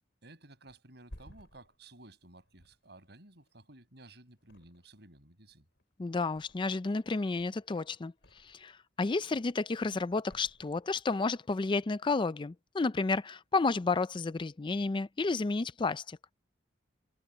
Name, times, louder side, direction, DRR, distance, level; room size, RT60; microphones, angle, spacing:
voice 1, 0.2-5.7, right 2 dB, 65° right, 7.4 m, -55 dB
Thump thud, 0.7-4.0 4.4-5.2 5.5-6.9 7.3-8.8 9.2-9.7 10.2-11.2 11.6-11.8, equal, 70° left, 4.5 m, -57 dB
voice 2, 6.0-8.1 8.4-16.2, left 3 dB, 25° left, 0.4 m, -31 dB
head